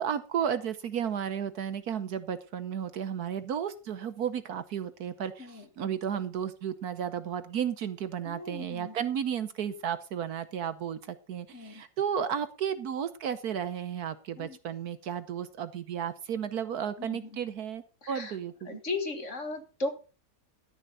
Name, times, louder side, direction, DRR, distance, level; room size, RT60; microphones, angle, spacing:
voice 1, 0.0-18.8, right 8 dB, 65° right, 13 dB, 1.3 m, -33 dB
voice 2, 8.3-8.9 11.5-11.8 14.4-14.6 17.0-17.3 18.0-18.4 18.7-19.9, left 3 dB, 45° left, 7 dB, 2.0 m, -36 dB
13.0 x 10.0 x 4.0 m, 0.33 s
omnidirectional pair, 1.9 m